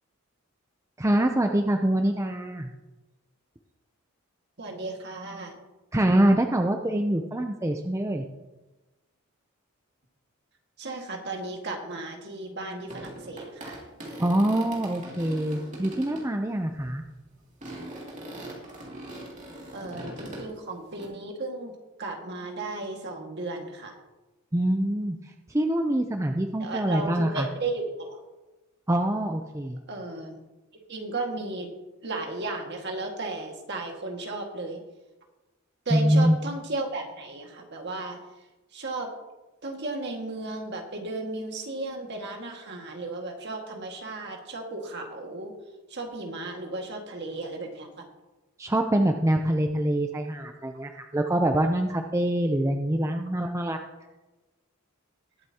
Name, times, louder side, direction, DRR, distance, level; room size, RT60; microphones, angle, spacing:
voice 1, 1.0-2.7 5.9-8.3 14.2-17.0 24.5-25.2 25.5-27.5 28.9-29.8 35.9-36.4 48.6-53.8, right 1 dB, 15° right, 4 dB, 0.5 m, -25 dB
voice 2, 4.6-5.5 10.8-13.8 19.7-21.7 22.0-23.9 26.6-28.2 29.9-30.4 30.9-31.7 32.0-34.8 35.9-38.2 38.7-39.1 39.6-45.5 45.9-47.9 53.1-53.2, right 2 dB, 50° right, 1 dB, 1.9 m, -34 dB
sound 1, 12.9-16.3 16.8-17.0 17.6-20.5 21.0-21.1, right 1 dB, 35° right, 2.5 m, -41 dB
20.5 x 8.1 x 2.9 m, 1.1 s
head